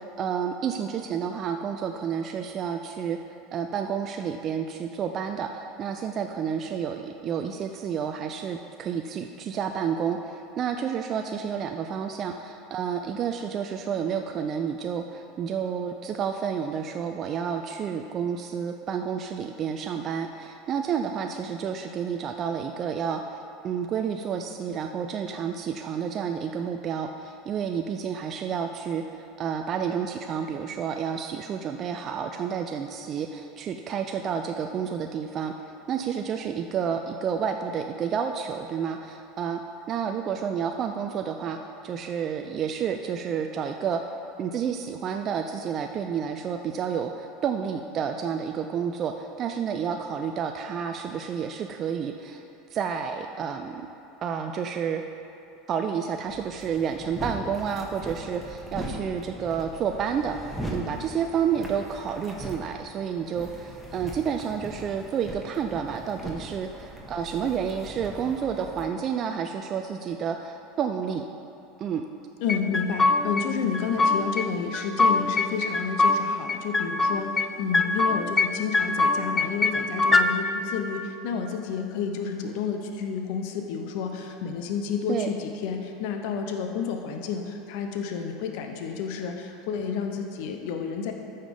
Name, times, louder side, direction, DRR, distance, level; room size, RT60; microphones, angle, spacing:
voice 1, 0.0-3.2 3.5-39.6 39.9-44.0 44.4-52.4 52.7-53.9 54.2-55.0 55.7-71.3 71.8-72.0 85.1-85.3, right 7 dB, 40° right, 5 dB, 0.4 m, -30 dB
sound 1, 56.3-68.9, equal, 5° left, 1.7 m, -40 dB
voice 2, 72.4-91.1, left 6 dB, 60° left, 4 dB, 0.7 m, -30 dB
sound 2, 72.5-73.5 73.7-74.5 74.7-76.2 76.5-77.5 77.7-78.5 78.7-80.3, left 3 dB, 20° left, 0.5 m, -22 dB
14.0 x 5.6 x 3.5 m, 2.7 s
hypercardioid pair, 80°, 0 cm